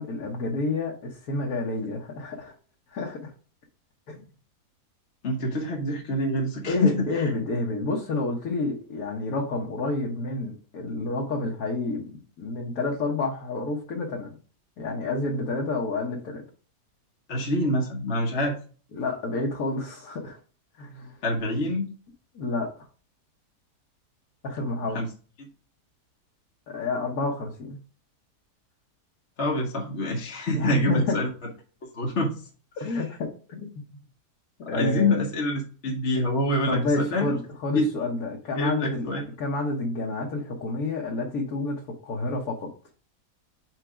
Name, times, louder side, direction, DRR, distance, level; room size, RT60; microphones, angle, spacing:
voice 1, 0.0-2.5 2.9-3.3 4.1-4.2 6.7-14.4 14.8-16.4 18.9-20.4 20.8-21.2 22.3-22.9 24.4-25.0 26.7-27.8 30.5-31.2 32.8-33.9 34.6-35.2 36.7-39.1 39.4-42.7, left 2 dB, 65° left, -1 dB, 1.4 m, -29 dB
voice 2, 5.2-7.3 17.3-18.6 21.2-21.9 24.9-25.1 29.4-31.3 31.9-32.3 34.6-37.4 37.7-37.9 38.5-39.2, left 1 dB, 45° left, -1 dB, 1.2 m, -26 dB
4.6 x 4.4 x 4.9 m, 0.39 s
omnidirectional pair, 1.8 m